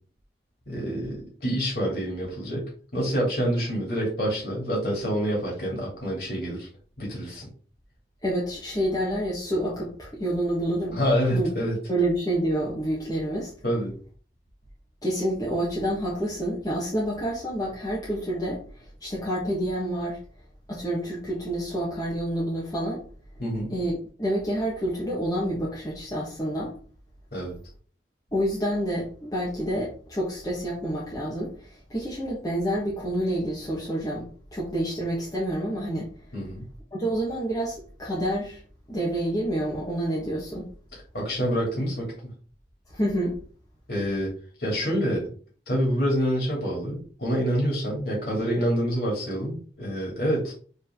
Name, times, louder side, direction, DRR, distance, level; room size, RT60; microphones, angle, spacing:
voice 1, 0.7-6.7 7.0-7.5 10.9-11.8 13.6-13.9 23.4-23.7 27.3-27.5 36.3-36.6 40.9-42.1 43.9-44.3 44.6-45.3 45.7-50.5, equal, 65° left, -3 dB, 2.8 m, -27 dB
voice 2, 8.2-11.0 11.3-11.5 11.9-13.5 15.0-20.2 20.7-23.1 23.7-23.9 24.2-26.8 28.3-36.1 36.9-38.6 38.9-40.7 42.9-43.4, right 1 dB, 20° left, -6 dB, 1.4 m, -28 dB
7.0 x 3.8 x 3.7 m, 0.43 s
head